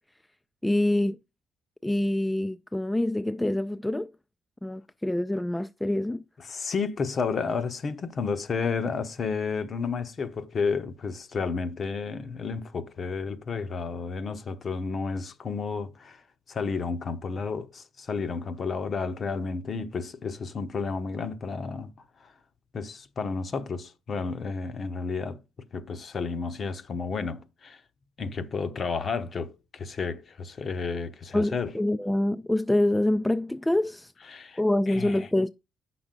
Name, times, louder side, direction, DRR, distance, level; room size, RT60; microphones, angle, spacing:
voice 1, 0.6-1.2 1.8-4.1 4.6-6.2 31.3-34.1 34.6-35.5, left 1 dB, 10° left, 0.3 m, -26 dB
voice 2, 6.4-16.2 16.5-21.9 22.2-22.3 22.7-25.4 25.7-27.8 28.2-31.7 34.3-34.6 34.9-35.3, left 5 dB, 45° left, 0.9 m, -31 dB
8.7 x 6.0 x 3.8 m
cardioid pair, 90°, 0 cm